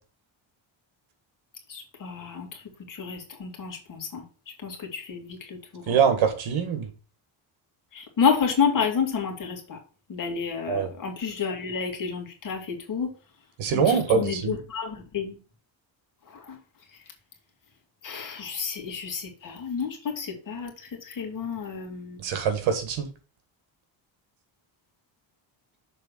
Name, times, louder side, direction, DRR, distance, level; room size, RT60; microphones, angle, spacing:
voice 1, 1.7-2.6 2.9-4.2 4.6-6.0 7.9-9.8 10.1-13.1 13.7-15.4 16.3-16.6 18.0-22.2, left 6 dB, 40° left, 2 dB, 2.1 m, -30 dB
voice 2, 5.9-6.9 10.7-10.9 13.6-14.6 22.2-23.1, right 6 dB, 75° right, 7 dB, 1.8 m, -23 dB
6.8 x 3.7 x 6.3 m, 0.36 s
cardioid pair, 155°, 47 cm